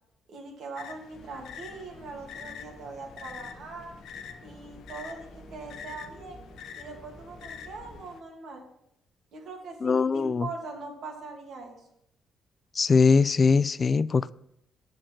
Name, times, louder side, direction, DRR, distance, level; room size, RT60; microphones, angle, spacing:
voice 1, 0.3-3.9 4.4-6.4 6.7-8.6 9.3-11.8, right 3 dB, 65° right, 2.1 m, -41 dB
sound 1, 0.8-8.2, left 7 dB, 80° left, 0.8 m, -46 dB
sound 2, 1.1-8.0, left 1 dB, 20° left, 1.9 m, -51 dB
voice 2, 9.8-10.5 12.8-14.3, left 5 dB, 35° left, 0.3 m, -21 dB
7.7 x 6.0 x 6.2 m
cardioid pair, 90°, 0 cm